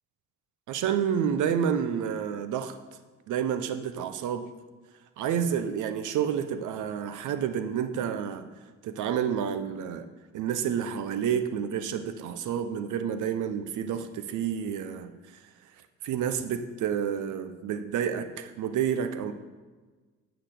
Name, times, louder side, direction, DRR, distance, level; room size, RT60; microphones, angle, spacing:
voice 1, 0.7-2.8 3.3-4.5 5.2-8.5 8.8-10.1 10.3-15.1 16.0-19.3, right 8 dB, 80° right, 9 dB, 0.7 m, -29 dB
8.9 x 4.0 x 6.5 m, 1.3 s
cardioid pair, 90°, 30 cm